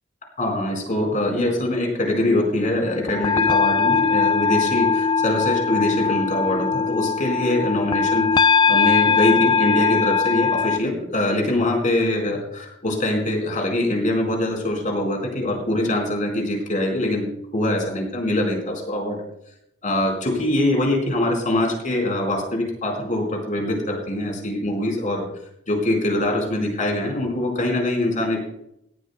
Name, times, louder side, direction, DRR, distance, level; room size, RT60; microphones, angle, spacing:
voice 1, 0.4-19.2 19.8-25.2 25.7-28.4, left 1 dB, 45° left, 1 dB, 4.5 m, -23 dB
sound 1, 2.9-10.8, left 5 dB, 25° left, 0.4 m, -20 dB
18.0 x 14.5 x 2.2 m, 0.78 s
head